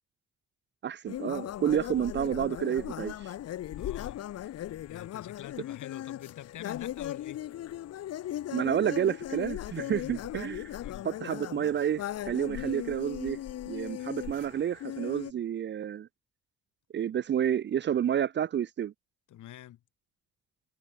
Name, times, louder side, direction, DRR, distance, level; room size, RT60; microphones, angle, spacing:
voice 1, 0.8-3.3 8.5-10.8 11.0-13.4 13.7-16.1 16.9-18.9, right 9 dB, 40° right, 0.4 m, -30 dB
sound 1, 1.1-15.3, left 12 dB, 55° left, 0.7 m, -38 dB
voice 2, 3.7-4.3 4.5-7.5 9.8-10.3 10.8-11.1 12.6-12.7 19.3-19.8, left 13 dB, 80° left, 4.0 m, -46 dB
cardioid pair, 90°, 30 cm